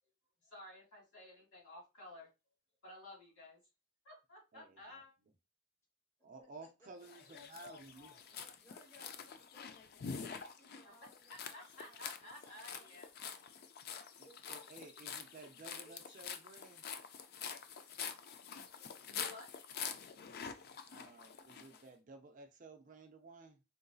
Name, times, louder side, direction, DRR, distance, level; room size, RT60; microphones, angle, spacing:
voice 1, 0.4-2.3 2.8-3.6 4.0-5.1 11.3-13.1 18.5-19.5, left 1 dB, 70° left, 1.9 m, -54 dB
voice 2, 4.5-5.0 6.2-8.4 14.2-16.8 20.9-23.6, right 3 dB, 35° right, 0.4 m, -55 dB
sound 1, 7.0-21.8, left 7 dB, 45° left, 0.3 m, -47 dB
voice 3, 8.3-9.8 10.1-13.0 14.2-14.8 16.0-16.1, equal, 15° left, 1.0 m, -64 dB
3.8 x 2.6 x 2.3 m
head